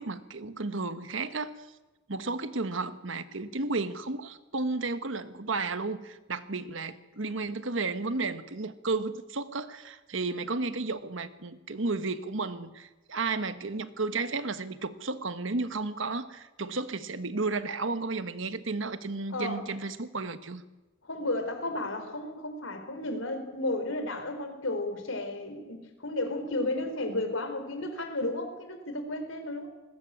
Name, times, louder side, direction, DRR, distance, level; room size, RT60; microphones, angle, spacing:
voice 1, 0.0-1.6 2.1-20.6, right 3 dB, 75° right, 11 dB, 1.4 m, -33 dB
voice 2, 19.3-19.6 21.0-29.7, left 2 dB, 90° left, 7 dB, 4.1 m, -33 dB
20.5 x 19.0 x 8.8 m, 1.1 s
head